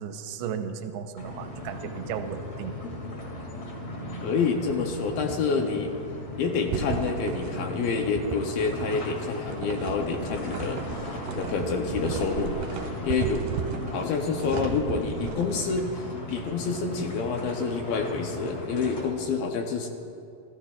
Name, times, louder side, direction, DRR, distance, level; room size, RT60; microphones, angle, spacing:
voice 1, 0.0-2.8, right 7 dB, 85° right, 6 dB, 2.6 m, -35 dB
sound 1, 1.2-19.0, left 1 dB, 45° left, 3.0 m, -37 dB
voice 2, 4.2-5.9 6.4-10.8 11.3-12.6 13.0-13.5 13.9-19.9, left 5 dB, 75° left, 3 dB, 2.3 m, -28 dB
sound 2, 6.7-15.6, right 6 dB, 70° right, 2.3 m, -34 dB
28.5 x 14.0 x 2.4 m, 2.5 s
omnidirectional pair, 4.7 m